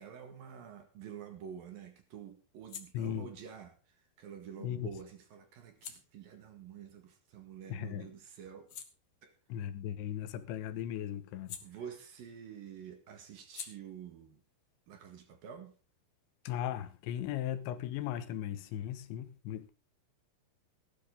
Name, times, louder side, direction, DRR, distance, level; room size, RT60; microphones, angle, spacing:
voice 1, 0.0-8.8 9.2-9.3 11.6-14.4 14.9-15.7, right 8 dB, 60° right, 3.1 m, -48 dB
sound 1, 0.9-7.8 8.2-12.4 12.7-16.1, left 8 dB, 60° left, 1.8 m, -54 dB
voice 2, 2.9-3.3 4.6-4.9 7.7-8.1 9.5-11.6 16.4-19.7, left 10 dB, 85° left, 3.4 m, -37 dB
17.0 x 12.0 x 3.8 m
omnidirectional pair, 5.3 m